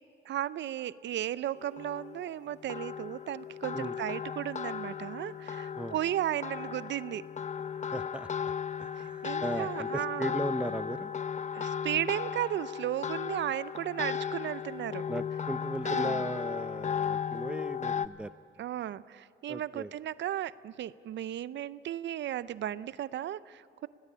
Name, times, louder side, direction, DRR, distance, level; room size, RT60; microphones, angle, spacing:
voice 1, 0.2-7.3 9.0-10.3 11.5-15.0 15.8-16.2 18.6-23.9, right 12 dB, 65° right, 17 dB, 0.6 m, -35 dB
sound 1, 1.6-18.1, left 7 dB, 35° left, 0.8 m, -36 dB
voice 2, 7.9-8.5 8.8-11.1 15.1-18.3 19.5-19.9, right 1 dB, 5° right, 14 dB, 0.6 m, -37 dB
26.0 x 18.5 x 8.5 m, 2.8 s
cardioid pair, 90°, 20 cm